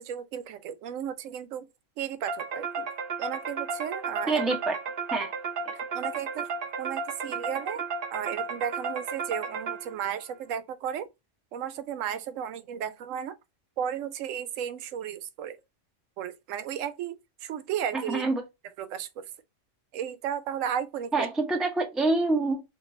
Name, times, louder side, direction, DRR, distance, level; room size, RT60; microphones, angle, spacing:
voice 1, 0.0-1.7 2.0-2.9 3.2-4.4 5.9-6.5 6.8-7.8 8.1-11.1 11.5-13.3 13.8-15.6 16.2-17.1 17.4-18.3 18.8-19.3 19.9-21.3, right 9 dB, 85° right, 1.0 m, -34 dB
sound 1, 2.3-10.1, right 5 dB, 55° right, 0.7 m, -34 dB
voice 2, 4.3-4.7 5.1-5.3 17.9-18.4 21.1-22.6, right 3 dB, ahead, 0.6 m, -26 dB
3.8 x 2.2 x 4.1 m
omnidirectional pair, 1.3 m